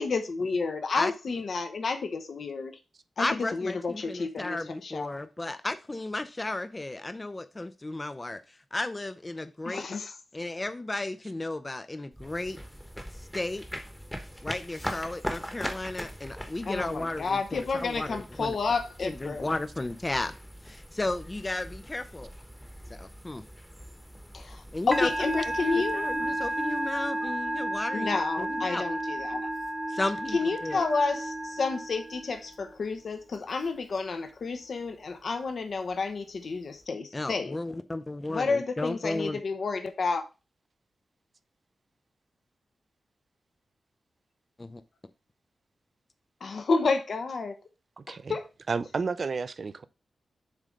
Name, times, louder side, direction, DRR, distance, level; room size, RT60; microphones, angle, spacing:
voice 1, 0.0-2.8 3.2-3.3 3.5-4.6 4.8-5.2 9.6-10.1 16.7-19.5 24.3-24.6 24.9-26.1 27.9-29.5 30.3-37.5 38.3-40.2 46.4-47.6 48.1-48.4, left 4 dB, 60° left, 0.8 m, -30 dB
voice 2, 1.0-1.4 3.2-9.9 10.3-12.6 13.2-13.6 14.4-18.6 19.0-20.3 20.6-22.3 22.9-23.4 24.7-25.3 25.6-28.8 29.9-30.9 37.1-39.4 44.6-44.8, left 2 dB, 20° left, 0.5 m, -34 dB
sound 1, 12.1-27.3, equal, 5° left, 1.0 m, -42 dB
Musical instrument, 24.9-32.5, right 1 dB, 15° right, 0.8 m, -32 dB
voice 3, 48.0-48.4 48.7-49.9, right 4 dB, 50° right, 0.5 m, -32 dB
7.4 x 3.2 x 5.1 m
wide cardioid pair, 115°, 0 cm